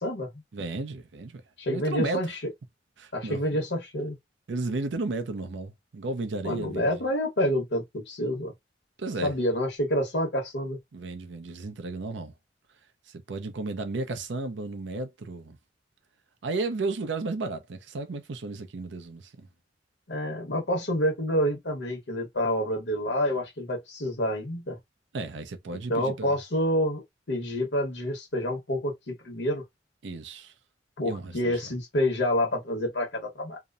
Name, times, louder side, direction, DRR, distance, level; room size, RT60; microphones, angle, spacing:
voice 1, 0.0-0.4 1.6-2.4 3.1-4.2 6.4-8.5 9.2-10.8 20.1-24.8 25.7-29.6 31.0-33.6, equal, 65° left, 1.1 m, -28 dB
voice 2, 0.5-1.4 1.7-2.2 3.0-3.4 4.5-6.9 9.0-9.3 10.9-12.3 13.1-15.6 16.4-19.3 25.1-26.3 30.0-30.5 31.0-31.7, right 3 dB, 80° right, 0.6 m, -33 dB
2.8 x 2.0 x 2.4 m
head